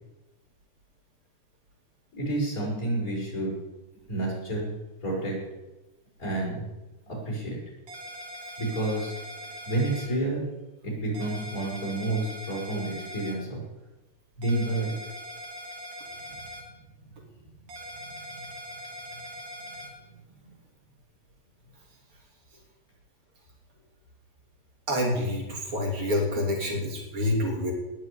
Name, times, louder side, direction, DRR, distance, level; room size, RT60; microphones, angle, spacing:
voice 1, 2.1-3.5 4.1-4.7 5.0-5.4 6.2-6.6 7.1-7.6 8.6-9.1 9.6-10.5 10.8-13.6 14.4-14.9 16.2-16.3 18.1-18.2, right 2 dB, 25° left, -4 dB, 6.5 m, -29 dB
sound 1, 7.9-10.1 11.1-13.3 14.4-16.6 17.7-19.9, equal, 85° right, 4.5 m, -41 dB
voice 2, 24.9-27.7, left 1 dB, 45° right, 0 dB, 3.9 m, -27 dB
19.5 x 6.9 x 8.5 m, 1.1 s
omnidirectional pair, 3.5 m